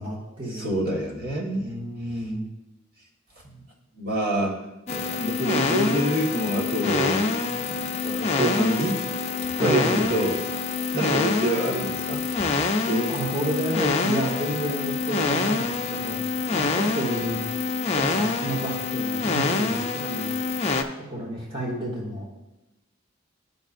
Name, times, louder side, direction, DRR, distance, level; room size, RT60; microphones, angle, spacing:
voice 1, 0.0-0.7 1.6-2.5 9.6-10.1 13.1-17.4 17.9-20.4 21.1-22.3, right 1 dB, 25° right, -3 dB, 1.2 m, -30 dB
voice 2, 0.5-1.7 3.4-3.6 3.9-4.5 4.9-9.0 9.5-10.4 10.9-12.2 12.8-13.1, right 1 dB, 45° right, -3 dB, 1.4 m, -26 dB
sound 1, 4.9-20.8, left 3 dB, 30° left, 0.5 m, -26 dB
12.5 x 5.3 x 2.5 m, 0.98 s
head